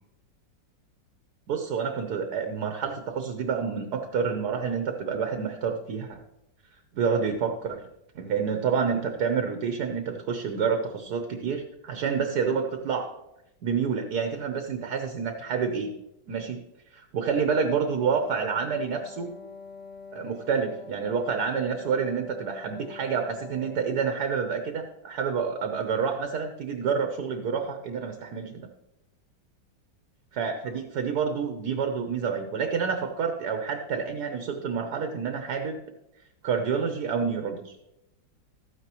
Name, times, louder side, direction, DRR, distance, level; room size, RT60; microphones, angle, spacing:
voice 1, 1.5-6.2 6.9-7.8 8.1-13.1 13.6-15.9 16.3-16.6 16.9-19.3 20.1-28.7 30.3-35.8 36.4-37.7, right 6 dB, 65° right, 5 dB, 1.4 m, -28 dB
Wind instrument woodwind instrument, 17.5-24.2, left 4 dB, 30° left, 1.0 m, -45 dB
13.5 x 9.4 x 3.0 m, 0.89 s
omnidirectional pair, 2.0 m